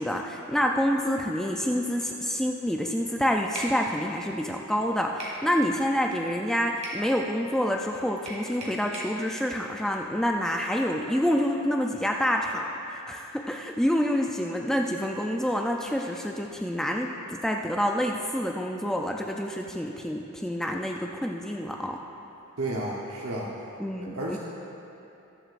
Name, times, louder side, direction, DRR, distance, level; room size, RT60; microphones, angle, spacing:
voice 1, 0.0-22.0 23.8-24.4, equal, ahead, 1 dB, 0.4 m, -27 dB
sound 1, 3.6-3.8 5.2-5.4 6.8-7.1 8.3-9.2, right 1 dB, 35° right, 2.1 m, -37 dB
voice 2, 22.6-23.5 24.1-24.4, right 1 dB, 75° right, -4 dB, 1.0 m, -31 dB
20.5 x 7.8 x 2.5 m, 3.0 s
head